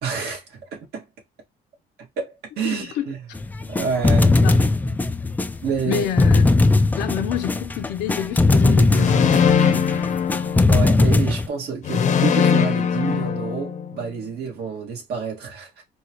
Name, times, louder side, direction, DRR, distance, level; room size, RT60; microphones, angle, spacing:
voice 1, 0.0-1.1 2.2-3.2 3.6-4.4 5.6-6.1 10.7-15.8, right 5 dB, 70° right, 2.0 m, -28 dB
voice 2, 2.6-3.1 4.4-4.6 5.8-6.4 7.0-9.5, left 10 dB, 90° left, 0.9 m, -28 dB
sound 1, 3.3-11.5, left 2 dB, 10° left, 0.3 m, -19 dB
sound 2, 8.9-11.1 11.8-14.1, left 6 dB, 45° left, 0.8 m, -20 dB
4.4 x 2.3 x 3.0 m
cardioid pair, 110°, 17 cm